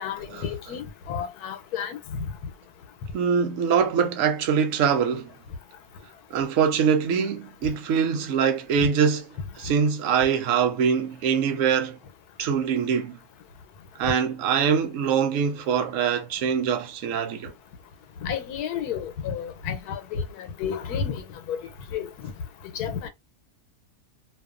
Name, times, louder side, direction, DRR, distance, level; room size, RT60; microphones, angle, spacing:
voice 1, 0.0-2.0 18.2-21.2 21.5-21.6 21.9-22.3 22.7-23.1, left 7 dB, 90° left, 1.2 m, -31 dB
voice 2, 3.1-5.3 6.3-9.2 9.6-12.0 12.4-13.2 14.0-17.5, right 7 dB, 70° right, 0.9 m, -23 dB
2.6 x 2.4 x 2.4 m
omnidirectional pair, 1.6 m